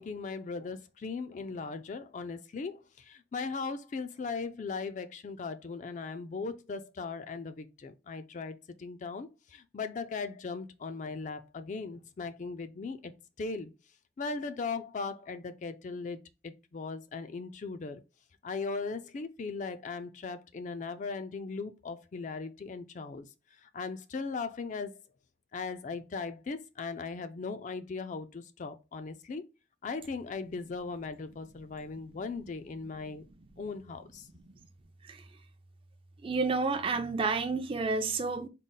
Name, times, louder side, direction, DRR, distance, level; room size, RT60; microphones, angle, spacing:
voice 1, 0.0-13.1 13.4-13.7 14.2-16.2 16.4-18.0 18.4-23.3 23.6-24.9 25.5-29.4 29.8-33.2 33.6-34.3, left 4 dB, 40° left, 0.4 m, -38 dB
voice 2, 36.2-38.5, right 4 dB, 30° right, 0.4 m, -30 dB
3.8 x 2.1 x 3.8 m
head